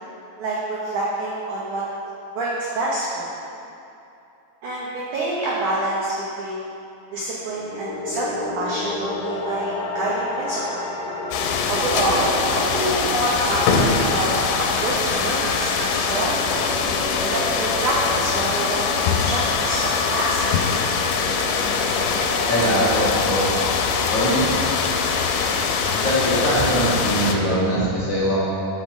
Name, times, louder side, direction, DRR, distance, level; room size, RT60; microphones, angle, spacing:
voice 1, 0.4-1.8 2.4-3.2 4.6-6.1 6.4-6.7 7.1-10.8 11.7-16.6 17.2-20.6, right 2 dB, 85° right, -6 dB, 1.7 m, -26 dB
sound 1, 7.4-27.3, left 2 dB, 70° left, 2.8 m, -31 dB
sound 2, 11.3-27.4, left 5 dB, 90° left, 2.9 m, -23 dB
voice 2, 22.5-23.7 24.1-24.4 25.9-28.4, equal, 45° left, -11 dB, 2.4 m, -22 dB
8.8 x 5.6 x 6.2 m, 2.7 s
omnidirectional pair, 5.1 m